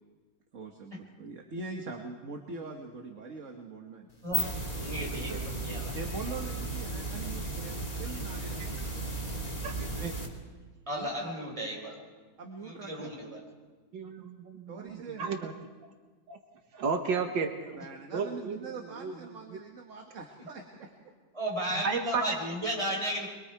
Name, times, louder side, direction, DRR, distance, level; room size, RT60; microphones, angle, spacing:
voice 1, 0.5-4.6 5.3-5.4 5.9-8.9 10.9-11.5 12.4-13.1 14.7-15.2 17.7-20.9, right 4 dB, 45° right, 2 dB, 1.7 m, -43 dB
sound 1, 4.1-10.3, right 2 dB, 20° left, 2.6 m, -35 dB
voice 2, 4.8-5.4 5.6-5.9 10.9-12.0 12.6-13.4 21.3-23.3, equal, 15° right, -2 dB, 5.0 m, -34 dB
voice 3, 9.6-10.1 13.9-14.9 15.2-15.5 16.3-16.4 16.7-17.8 18.1-18.6 19.0-19.1 21.8-22.2, right 5 dB, 80° right, 4 dB, 2.0 m, -32 dB
24.5 x 23.0 x 4.7 m, 1.4 s
omnidirectional pair, 2.0 m